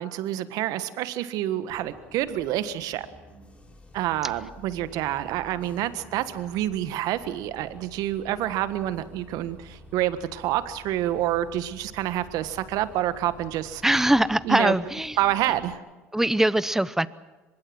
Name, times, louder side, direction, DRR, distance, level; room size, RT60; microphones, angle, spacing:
voice 1, 0.0-3.1 3.9-13.8 14.4-14.7 15.2-15.8, right 13 dB, 60° right, 12 dB, 1.5 m, -28 dB
Bus, 1.7-15.7, left 1 dB, 15° left, 4.1 m, -50 dB
voice 2, 13.8-15.2 16.1-17.1, right 1 dB, 5° right, 17 dB, 0.8 m, -22 dB
24.0 x 22.0 x 6.2 m, 1.2 s
hypercardioid pair, 75°, 7 cm